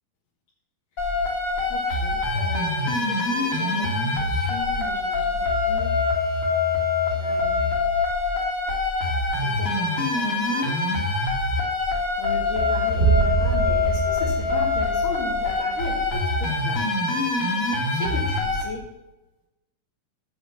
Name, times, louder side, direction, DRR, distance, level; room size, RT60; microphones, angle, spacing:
sound 1, 1.0-18.6, left 3 dB, 40° left, 3.0 m, -24 dB
voice 1, 1.7-5.9 7.2-7.8 9.4-11.0 11.8-11.9 12.2-16.8 17.9-18.8, left 4 dB, 60° left, -6 dB, 3.5 m, -37 dB
sound 2, 13.0-15.6, right 6 dB, 35° right, 2.3 m, -24 dB
8.4 x 8.1 x 7.0 m, 0.99 s
omnidirectional pair, 4.3 m